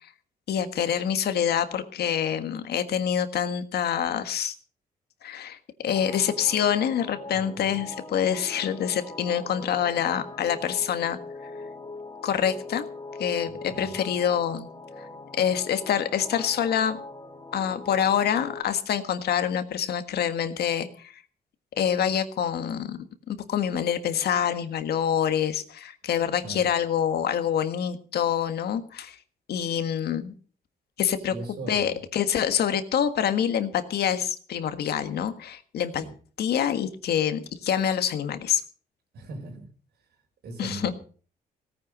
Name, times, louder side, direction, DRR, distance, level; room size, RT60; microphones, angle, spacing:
voice 1, 0.5-4.5 5.2-11.2 12.2-12.9 13.2-14.7 15.4-17.0 17.5-21.2 21.8-23.0 23.3-29.2 29.5-30.3 31.0-31.3 31.7-36.0 36.4-38.6 40.6-40.9, left 9 dB, 80° left, 9 dB, 1.6 m, -26 dB
sound 1, 5.9-18.6, left 3 dB, 25° left, 2.5 m, -41 dB
voice 2, 7.3-7.8 13.5-14.0 26.4-26.6 31.3-32.0 36.0-36.1 39.1-39.6 40.4-40.9, right 3 dB, 80° right, 5 dB, 4.9 m, -39 dB
17.5 x 9.5 x 6.2 m, 0.43 s
cardioid pair, 115°, 16 cm